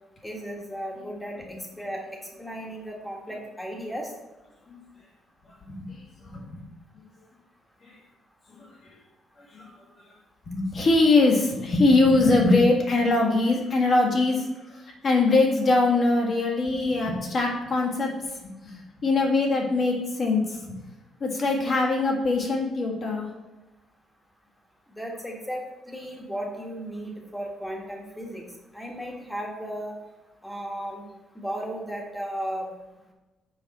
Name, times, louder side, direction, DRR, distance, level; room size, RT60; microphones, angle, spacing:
voice 1, 0.2-4.1 25.0-28.5 28.7-29.9 30.4-31.0 31.3-32.7, equal, 5° left, 0 dB, 1.4 m, -35 dB
voice 2, 5.4-6.6 7.8-8.0 8.5-8.9 9.4-10.1 10.5-20.7 21.2-23.3, left 3 dB, 40° left, 0 dB, 1.5 m, -23 dB
7.1 x 5.0 x 4.2 m, 1.1 s
cardioid pair, 130°, 0 cm